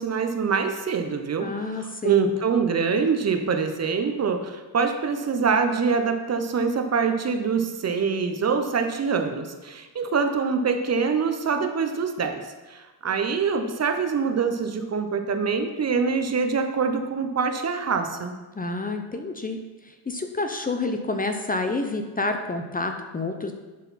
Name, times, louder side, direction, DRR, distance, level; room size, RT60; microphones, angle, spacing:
voice 1, 0.0-12.4 12.7-18.3, right 5 dB, 35° right, 6 dB, 0.8 m, -25 dB
voice 2, 1.4-2.3 18.5-19.6 19.8-23.5, left 3 dB, 20° left, 6 dB, 0.7 m, -29 dB
11.0 x 4.0 x 4.2 m, 1.2 s
supercardioid pair, 80°, 45 cm